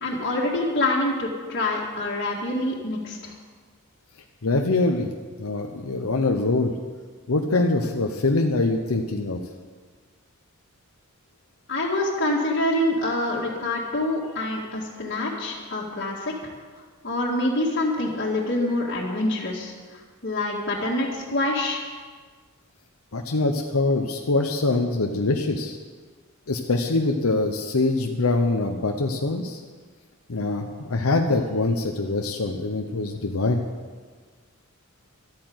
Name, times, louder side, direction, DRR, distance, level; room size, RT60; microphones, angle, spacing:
voice 1, 0.0-3.3 11.7-16.3 17.0-19.7 20.2-21.8, left 1 dB, 50° left, -6 dB, 2.1 m, -26 dB
voice 2, 4.4-5.1 5.4-6.7 7.3-9.4 23.1-25.8 26.5-29.6 30.3-33.6, left 2 dB, 85° left, 3 dB, 0.9 m, -24 dB
12.5 x 8.8 x 7.9 m, 1.5 s
head